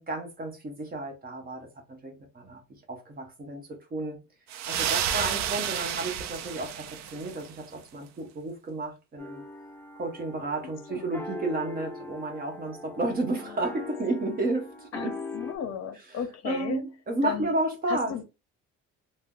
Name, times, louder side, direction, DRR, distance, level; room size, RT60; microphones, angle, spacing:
voice 1, 0.0-2.6 2.9-4.2 4.7-9.4 9.9-15.1 16.4-18.1, right 2 dB, 30° right, 0.9 m, -32 dB
sound 1, 4.5-7.5, right 9 dB, 65° right, 0.4 m, -31 dB
sound 2, 9.2-15.5, left 2 dB, 5° left, 0.3 m, -41 dB
voice 2, 10.6-11.1 13.4-13.6 14.9-16.8 17.2-17.5 17.9-18.2, left 8 dB, 60° left, 0.6 m, -35 dB
2.6 x 2.0 x 3.6 m
cardioid pair, 150°, 30 cm